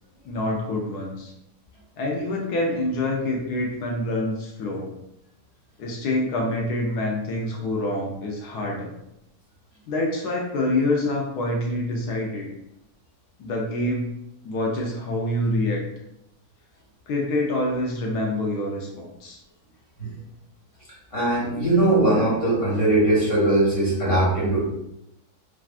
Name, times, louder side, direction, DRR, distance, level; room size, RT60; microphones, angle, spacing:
voice 1, 0.2-1.3 2.0-4.9 5.8-8.9 9.9-12.5 13.4-14.1 14.4-15.8 17.1-19.4, left 1 dB, 80° left, -1 dB, 1.2 m, -26 dB
voice 2, 21.1-24.6, right 1 dB, 20° left, -7 dB, 1.3 m, -20 dB
3.4 x 2.4 x 2.3 m, 0.80 s
omnidirectional pair, 1.7 m